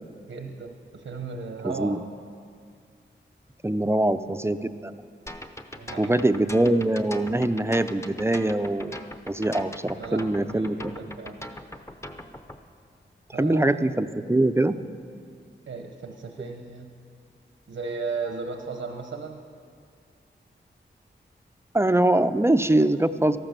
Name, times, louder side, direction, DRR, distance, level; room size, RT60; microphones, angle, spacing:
voice 1, 0.3-2.0 5.7-6.2 9.9-11.4 13.3-13.8 15.7-16.9 17.7-19.4, right 4 dB, 90° right, 4 dB, 1.0 m, -35 dB
voice 2, 1.6-2.0 3.6-4.9 6.0-9.0 9.3-10.9 13.4-14.8 21.7-23.4, right 1 dB, 15° right, 10 dB, 0.5 m, -23 dB
sound 1, 5.3-12.6, left 1 dB, 15° left, 0.8 m, -40 dB
13.5 x 12.0 x 6.7 m, 2.2 s
wide cardioid pair, 85°, 20 cm